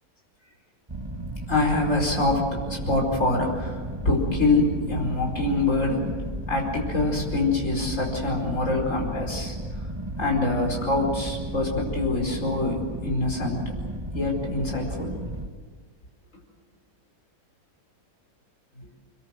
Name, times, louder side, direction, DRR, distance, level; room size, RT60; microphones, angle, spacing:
sound 1, 0.9-15.5, right 1 dB, 20° right, 1.1 m, -34 dB
voice 1, 1.5-6.1 6.5-9.9 10.2-13.7 14.1-15.3 18.8-18.9, left 2 dB, 55° left, 0 dB, 5.3 m, -25 dB
26.5 x 22.0 x 7.9 m, 1.5 s
omnidirectional pair, 1.6 m